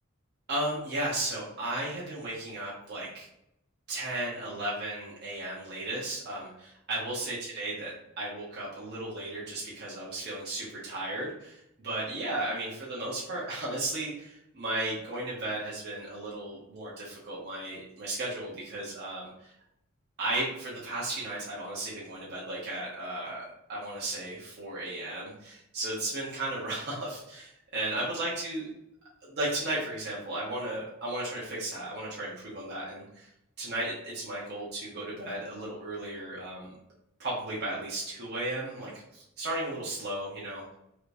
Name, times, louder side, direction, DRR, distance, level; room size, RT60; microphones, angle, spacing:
voice 1, 0.5-3.3 3.9-19.5 20.2-28.7 29.2-33.3 33.6-36.7 37.2-40.6, right 1 dB, 50° right, -6 dB, 1.1 m, -35 dB
5.0 x 3.2 x 2.6 m, 0.79 s
head